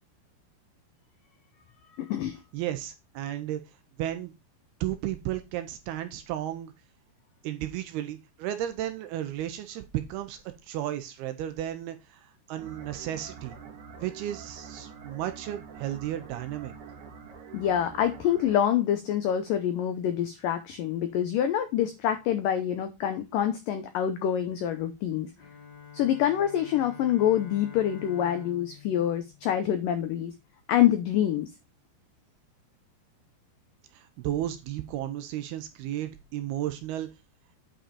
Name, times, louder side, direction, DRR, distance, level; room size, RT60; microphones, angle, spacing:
voice 1, 2.0-2.4 17.5-25.3 25.9-30.3 30.7-31.5, left 10 dB, 85° left, 8 dB, 1.9 m, -26 dB
voice 2, 2.5-3.6 4.0-4.3 4.8-6.7 7.4-13.6 14.0-16.7 33.9-37.1, right 12 dB, 80° right, 8 dB, 2.5 m, -34 dB
sound 1, 12.6-18.6, right 6 dB, 55° right, 2.6 m, -46 dB
Bowed string instrument, 25.4-30.2, left 8 dB, 40° left, 1.8 m, -48 dB
9.1 x 5.2 x 4.2 m, 0.24 s
omnidirectional pair, 5.0 m